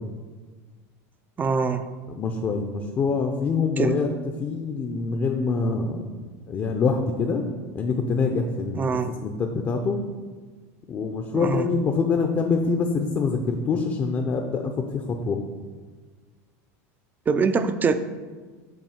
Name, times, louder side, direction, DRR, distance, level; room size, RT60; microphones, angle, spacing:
voice 1, 1.4-1.9 3.8-4.0 8.7-9.1 11.3-11.7 17.3-17.9, right 5 dB, 20° right, 11 dB, 0.4 m, -23 dB
voice 2, 2.1-4.1 4.4-6.0 6.5-7.4 7.7-8.9 9.2-10.0 10.9-15.4, left 4 dB, 30° left, 4 dB, 0.5 m, -25 dB
7.0 x 2.7 x 5.7 m, 1.4 s
supercardioid pair, 115°, 8 cm